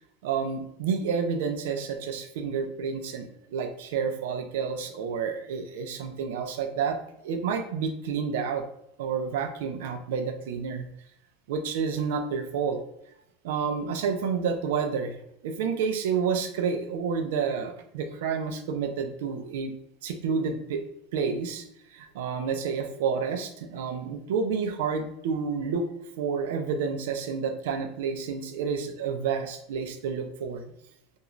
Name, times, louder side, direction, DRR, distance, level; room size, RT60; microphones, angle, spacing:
voice 1, 0.2-7.0 7.2-8.7 9.0-10.9 11.5-12.8 13.4-15.2 15.4-19.7 20.0-20.9 21.1-25.9 26.2-30.6, right 6 dB, 80° right, 6 dB, 0.4 m, -29 dB
2.4 x 2.3 x 3.0 m, 0.75 s
supercardioid pair, 145°, 0 cm